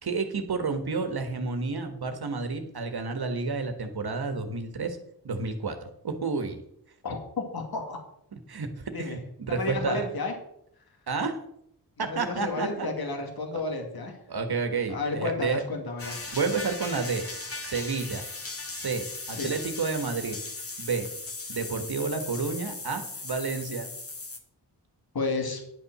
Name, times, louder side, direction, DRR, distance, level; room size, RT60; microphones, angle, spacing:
voice 1, 0.0-5.0 5.2-6.6 8.3-8.7 9.0-10.1 11.1-11.4 12.0-12.9 13.5-13.6 14.3-15.6 16.3-17.2 17.6-18.2 18.7-20.4 20.8-21.1 21.5-23.9, right 4 dB, 65° right, 7 dB, 1.5 m, -30 dB
voice 2, 7.0-8.0 8.9-9.2 9.5-10.3 12.0-14.2 14.9-16.3 19.3-19.5 25.1-25.6, left 3 dB, 60° left, 3 dB, 2.2 m, -32 dB
sound 1, 16.0-24.4, left 3 dB, 35° left, 1.6 m, -38 dB
10.5 x 7.1 x 6.1 m, 0.73 s
wide cardioid pair, 110°, 41 cm